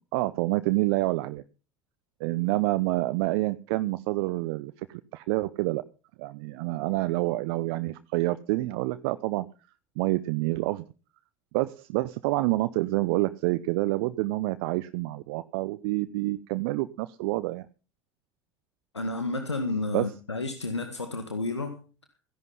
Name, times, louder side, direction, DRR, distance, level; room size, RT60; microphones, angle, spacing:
voice 1, 0.0-1.4 2.2-5.8 6.2-9.5 10.0-10.8 11.5-17.7 19.9-20.1, right 19 dB, 60° right, 0.8 m, -28 dB
voice 2, 18.9-21.8, left 2 dB, 90° left, 1.7 m, -31 dB
16.5 x 11.0 x 5.6 m
figure-of-eight pair, 70°, 14 cm